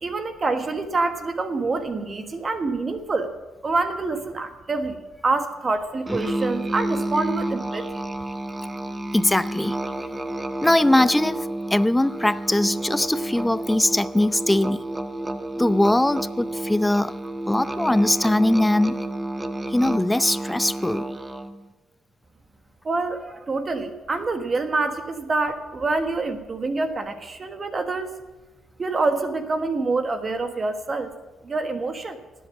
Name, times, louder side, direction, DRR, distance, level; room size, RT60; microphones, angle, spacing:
voice 1, 0.0-3.3 3.6-7.8 22.8-28.2 28.8-31.1 31.4-32.2, right 3 dB, 35° right, 7 dB, 1.3 m, -26 dB
Musical instrument, 6.1-21.6, right 1 dB, 20° right, 1.1 m, -30 dB
voice 2, 9.1-9.8 10.6-14.9 15.6-17.1 17.5-19.0 19.7-21.1, left 1 dB, 10° left, 16 dB, 0.5 m, -21 dB
19.0 x 8.1 x 7.5 m, 1.2 s
cardioid pair, 80°, 0 cm